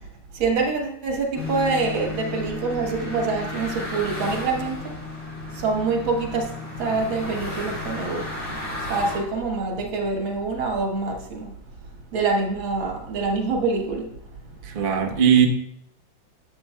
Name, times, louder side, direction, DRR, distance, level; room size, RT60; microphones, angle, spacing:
voice 1, 0.3-4.9 5.5-6.5 6.8-11.5 12.1-14.1, right 4 dB, 85° right, 1 dB, 2.2 m, -26 dB
sound 1, 1.4-9.2, left 3 dB, 75° left, 3.3 m, -33 dB
voice 2, 14.6-15.5, right 8 dB, 50° right, 2 dB, 0.6 m, -18 dB
11.5 x 6.9 x 2.2 m, 0.74 s
omnidirectional pair, 2.1 m